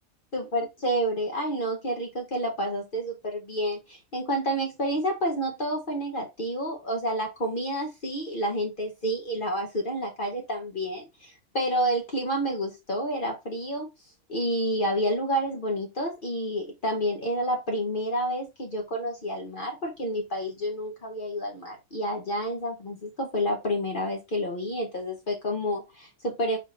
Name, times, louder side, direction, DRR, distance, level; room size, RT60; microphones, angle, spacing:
voice 1, 0.3-13.9 14.3-26.6, equal, 40° left, 2 dB, 1.0 m, -29 dB
4.1 x 2.9 x 4.2 m, 0.23 s
omnidirectional pair, 1.5 m